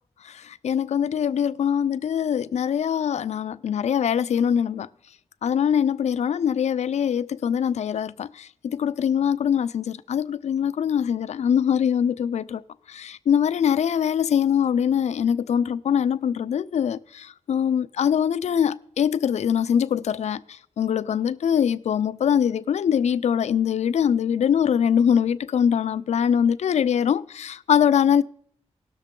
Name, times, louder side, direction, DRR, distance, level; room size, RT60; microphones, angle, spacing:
voice 1, 0.2-4.9 5.4-12.6 12.9-28.2, left 8 dB, 75° left, 0.4 m, -23 dB
18.0 x 6.5 x 3.7 m
wide cardioid pair, 130°, 12 cm